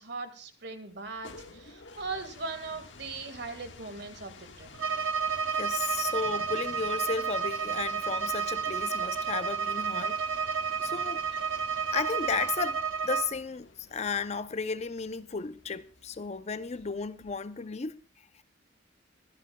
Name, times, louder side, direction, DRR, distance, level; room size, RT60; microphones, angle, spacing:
voice 1, 0.0-4.7, right 3 dB, 60° right, 1.8 m, -39 dB
sound 1, 0.9-17.7, left 3 dB, 65° left, 1.6 m, -52 dB
Bowed string instrument, 4.7-13.3, right 6 dB, 90° right, 0.9 m, -31 dB
voice 2, 5.6-10.2 10.8-11.2 11.9-18.0, left 5 dB, 35° left, 0.6 m, -34 dB
24.0 x 11.0 x 2.3 m
head